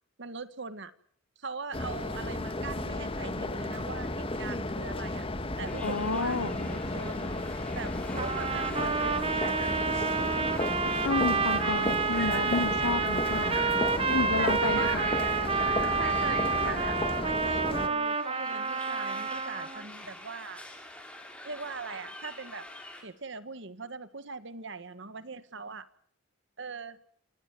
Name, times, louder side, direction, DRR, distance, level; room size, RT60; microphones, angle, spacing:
voice 1, 0.2-0.9 1.4-5.2 5.6-7.4 7.7-10.8 11.6-12.1 14.4-15.1 16.0-17.0 17.2-20.7 21.4-22.6 23.0-25.9 26.6-27.0, right 4 dB, 60° right, 12 dB, 1.5 m, -41 dB
sound 1, 1.7-17.9, left 2 dB, 25° left, 1.8 m, -33 dB
sound 2, 5.7-23.0, left 1 dB, 5° left, 6.2 m, -45 dB
voice 2, 5.8-6.6 11.0-13.5 14.1-14.9, left 4 dB, 80° left, 14 dB, 1.0 m, -31 dB
sound 3, 8.2-19.8, right 5 dB, 30° right, 1.3 m, -29 dB
28.5 x 18.5 x 9.1 m, 0.62 s
head